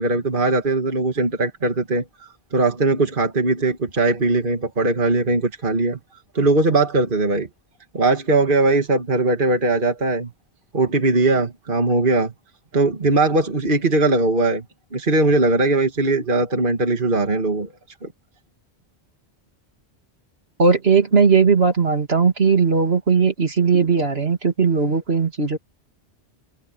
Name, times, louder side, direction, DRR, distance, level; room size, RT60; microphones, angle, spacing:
voice 1, 0.0-6.0 6.3-7.5 7.9-10.3 10.7-12.3 12.7-14.6 14.9-17.7, right 2 dB, 50° right, 2.2 m, -20 dB
voice 2, 20.6-25.6, right 5 dB, 65° right, 2.9 m, -18 dB
omnidirectional pair, 1.1 m